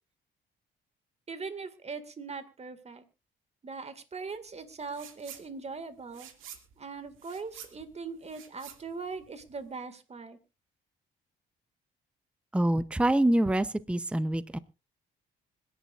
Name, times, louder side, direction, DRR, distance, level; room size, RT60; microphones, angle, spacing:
voice 1, 1.3-3.0 3.6-6.3 6.8-10.4, right 4 dB, 35° right, 10 dB, 2.0 m, -40 dB
sound 1, 4.9-5.5 5.8-9.7, right 9 dB, 85° right, 2.2 m, -49 dB
voice 2, 12.5-14.6, right 1 dB, 5° right, 15 dB, 0.7 m, -26 dB
25.5 x 10.5 x 2.5 m, 0.28 s
cardioid pair, 90°, 20 cm